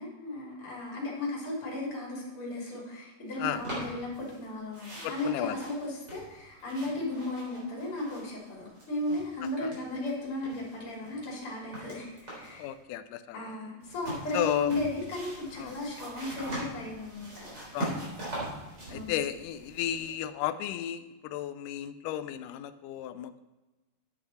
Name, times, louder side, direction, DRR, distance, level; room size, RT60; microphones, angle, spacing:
voice 1, 0.0-12.7 13.3-17.5 17.9-18.1 18.9-19.2, left 2 dB, 40° left, -4 dB, 4.0 m, -35 dB
sound 1, 3.5-4.4 4.7-8.5 8.7-10.1 10.4-12.6 13.8-20.1, right 1 dB, 30° right, 4.2 m, -42 dB
voice 2, 5.0-5.6 9.6-9.7 12.6-13.6 14.3-14.7 15.6-15.8 17.7-18.4 18.9-23.4, left 11 dB, 80° left, 12 dB, 2.0 m, -34 dB
9.7 x 8.2 x 4.2 m, 1.1 s
omnidirectional pair, 4.0 m